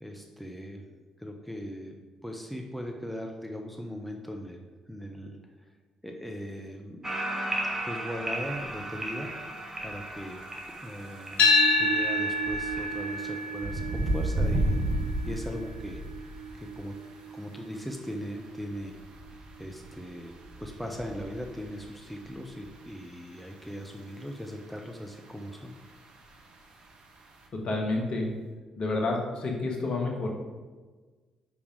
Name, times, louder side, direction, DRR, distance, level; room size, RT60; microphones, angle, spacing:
voice 1, 0.0-1.9 2.2-5.4 6.0-7.5 7.8-10.4 10.8-16.0 16.5-16.9 17.3-19.0 19.6-20.3 20.6-25.7, equal, 5° left, 2 dB, 0.8 m, -39 dB
sound 1, 7.0-13.5, right 1 dB, 20° right, 1.6 m, -36 dB
sound 2, 8.3-27.5, right 1 dB, 55° right, 1.0 m, -37 dB
sound 3, 11.4-19.6, left 2 dB, 70° left, 1.1 m, -29 dB
voice 2, 27.5-28.3 28.8-30.3, left 2 dB, 50° left, 0 dB, 1.4 m, -29 dB
5.1 x 5.0 x 5.0 m, 1.3 s
hypercardioid pair, 45°, 2 cm